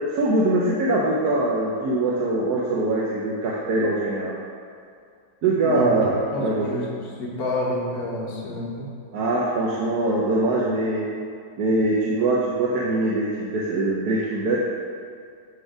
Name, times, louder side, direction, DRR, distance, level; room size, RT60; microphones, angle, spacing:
voice 1, 0.1-4.4 5.4-6.7 9.1-11.1 11.6-14.6, right 2 dB, 65° right, -5 dB, 1.3 m, -22 dB
voice 2, 6.3-6.9 7.2-8.9, left 1 dB, 60° left, -3 dB, 1.6 m, -29 dB
8.0 x 4.1 x 4.9 m, 2.3 s
omnidirectional pair, 1.9 m